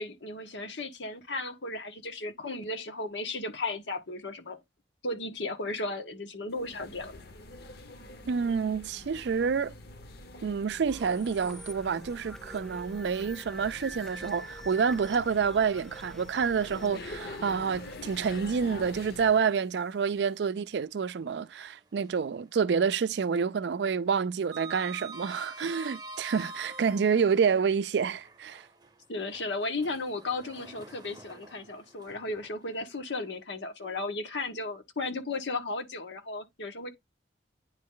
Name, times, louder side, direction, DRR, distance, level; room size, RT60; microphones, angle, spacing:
voice 1, 0.0-4.6 5.0-7.2 29.1-36.9, left 2 dB, 85° left, 1.3 m, -35 dB
sound 1, 6.5-19.5, left 2 dB, 60° left, 1.0 m, -46 dB
voice 2, 8.3-9.7 10.4-28.6, right 6 dB, 70° right, 0.4 m, -28 dB
sound 2, 10.9-19.5, right 1 dB, ahead, 0.4 m, -47 dB
Sliding door, 18.3-19.2 19.5-19.7 21.4-22.4 22.7-23.1 23.3-27.4 28.1-33.3, right 3 dB, 25° right, 0.7 m, -47 dB
9.4 x 3.2 x 3.7 m
head